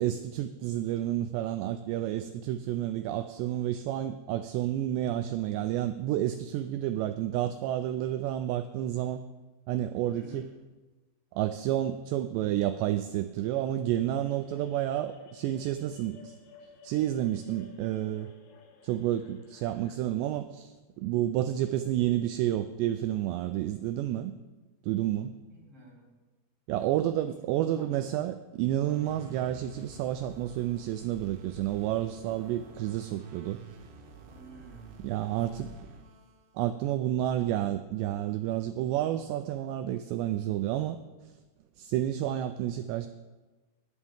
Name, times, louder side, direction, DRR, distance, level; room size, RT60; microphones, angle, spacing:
voice 1, 0.0-9.2 9.7-10.4 11.3-16.4 16.8-18.3 18.8-24.3 24.8-25.3 26.7-33.6 35.0-35.7 36.6-41.0 41.2-41.3 41.8-43.1, right 12 dB, 90° right, 10 dB, 2.5 m, -30 dB
voice 2, 10.1-10.5 25.5-26.2 26.7-27.0 27.4-27.9 34.2-35.0 35.3-35.8, right 1 dB, 35° right, -3 dB, 1.3 m, -52 dB
sound 1, 14.0-20.0, left 4 dB, 85° left, 3.7 m, -54 dB
sound 2, 28.9-36.6, right 4 dB, 70° right, 3.1 m, -49 dB
18.5 x 11.5 x 3.6 m, 1.2 s
omnidirectional pair, 5.5 m